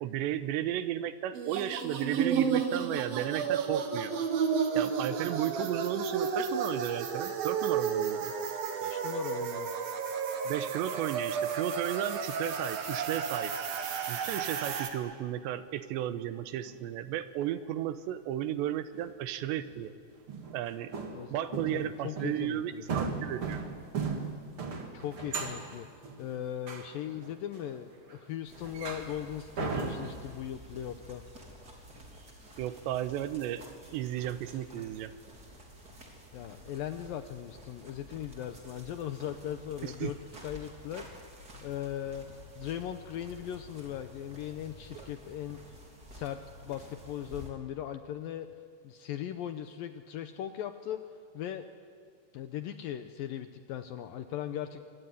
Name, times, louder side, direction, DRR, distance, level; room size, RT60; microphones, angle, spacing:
voice 1, 0.0-4.1 4.7-8.3 10.4-13.5 14.1-19.9 20.5-20.9 21.3-23.6 32.6-33.6 33.9-35.1 39.8-40.1 45.0-45.1, right 12 dB, 85° right, 11 dB, 3.2 m, -34 dB
sound 1, 1.3-14.9, right 6 dB, 60° right, 3.4 m, -32 dB
voice 2, 8.8-9.7 21.1-22.8 24.9-25.9 26.2-31.2 36.3-41.3 41.6-42.3 42.6-45.6 46.1-48.5 48.8-51.0 51.3-51.7 52.3-54.9, left 10 dB, 80° left, 8 dB, 2.1 m, -39 dB
steps on wooden floor fix, 12.9-13.1 13.8-14.0 16.6-16.8 18.9-19.1 19.6-19.8 20.3-20.6 20.9-21.9 22.2-22.5 22.9-28.2 28.5-29.2 29.6-30.2, right 5 dB, 40° right, 2.4 m, -37 dB
sound 2, 28.4-47.5, equal, 25° right, 3.5 m, -51 dB
25.5 x 23.5 x 9.7 m, 2.2 s
omnidirectional pair, 5.0 m